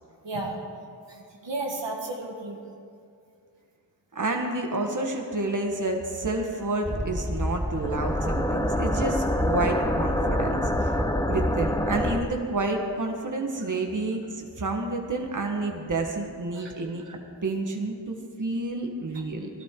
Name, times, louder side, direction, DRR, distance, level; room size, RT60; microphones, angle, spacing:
voice 1, 0.2-0.6 1.1-2.6 11.3-11.4 13.7-13.8 16.5-16.7 19.1-19.2, right 2 dB, 80° right, 0 dB, 1.6 m, -34 dB
voice 2, 4.1-10.9 11.3-19.5, right 2 dB, 45° right, 2 dB, 1.5 m, -29 dB
sound 1, 6.8-12.2, left 1 dB, 10° left, 1.0 m, -26 dB
17.5 x 12.0 x 3.8 m, 2.5 s
cardioid pair, 40°, 43 cm